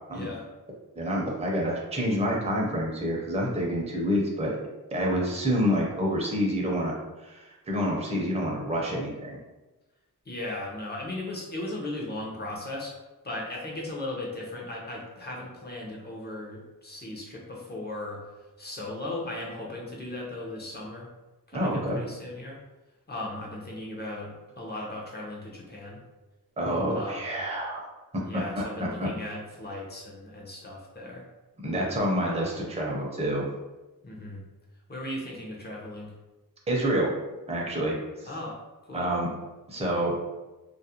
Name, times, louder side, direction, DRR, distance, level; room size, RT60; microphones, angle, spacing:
voice 1, 0.1-0.5 10.2-13.0 13.2-18.2 18.6-21.1 21.5-22.6 23.1-26.0 26.9-27.2 28.2-31.3 32.2-32.5 34.0-34.5 34.9-36.1 38.2-39.1, left 1 dB, 30° left, -3 dB, 0.7 m, -37 dB
voice 2, 0.9-4.5 4.9-9.4 21.5-22.0 26.6-27.9 28.1-29.1 31.6-33.5 36.7-37.1 37.5-38.0 38.9-39.3 39.7-40.1, equal, 20° right, -2 dB, 0.6 m, -28 dB
2.4 x 2.1 x 2.7 m, 1.1 s
wide cardioid pair, 85°, 35 cm